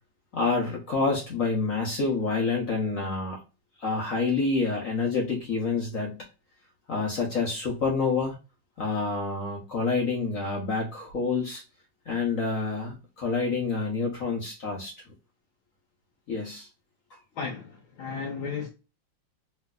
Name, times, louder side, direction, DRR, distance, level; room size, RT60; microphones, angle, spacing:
voice 1, 0.3-3.4 3.8-6.2 6.9-8.4 8.8-11.6 12.1-14.9 16.3-16.7, left 4 dB, 55° left, 1.0 m, -28 dB
voice 2, 17.4-18.7, left 5 dB, 75° left, 1.5 m, -34 dB
3.3 x 3.1 x 2.2 m
omnidirectional pair, 2.3 m